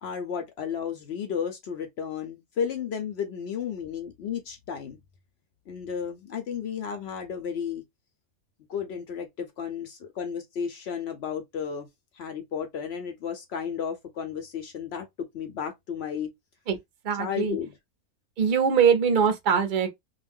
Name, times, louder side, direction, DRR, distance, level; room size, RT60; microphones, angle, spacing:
voice 1, 0.0-5.0 5.7-7.8 8.7-11.9 12.1-15.1 15.3-16.3 17.2-17.8, left 7 dB, 65° left, 0.6 m, -33 dB
voice 2, 17.0-17.6 18.4-19.9, right 7 dB, 55° right, 0.6 m, -22 dB
2.5 x 2.1 x 3.4 m
omnidirectional pair, 1.6 m